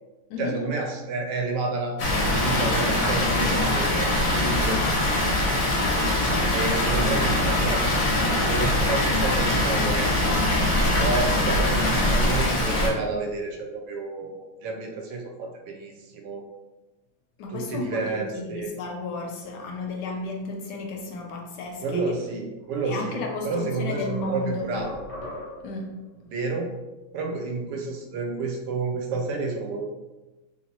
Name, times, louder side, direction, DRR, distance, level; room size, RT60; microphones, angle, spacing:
voice 1, 0.4-2.0 2.3-4.8 6.5-10.3 11.0-16.4 17.5-18.7 21.8-23.2 23.4-24.9 26.2-26.7 27.1-29.9, right 3 dB, 75° right, 2 dB, 1.2 m, -30 dB
Water, 2.0-12.9, left 1 dB, 55° left, 0.9 m, -22 dB
voice 2, 17.4-22.0 22.8-24.7 25.6-25.9, left 2 dB, 75° left, 1 dB, 1.1 m, -33 dB
sound 1, 22.6-22.7 23.2-25.8, left 1 dB, 30° left, 0.6 m, -39 dB
3.2 x 2.8 x 2.8 m, 1.1 s
omnidirectional pair, 2.0 m